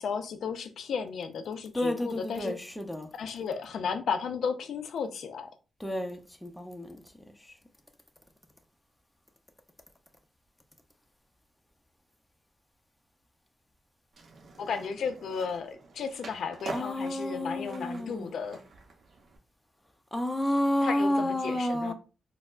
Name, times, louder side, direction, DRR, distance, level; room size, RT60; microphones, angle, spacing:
voice 1, 0.0-2.5 3.2-5.5 14.6-18.6 20.8-21.9, left 6 dB, 75° left, 0.4 m, -34 dB
voice 2, 1.7-3.1 5.8-7.0 7.4-7.6 16.7-18.4 20.1-21.9, left 1 dB, 10° left, 0.5 m, -30 dB
Skateboard, 14.1-19.4, right 3 dB, 65° right, 0.7 m, -46 dB
4.2 x 2.0 x 2.4 m
cardioid pair, 70°, 0 cm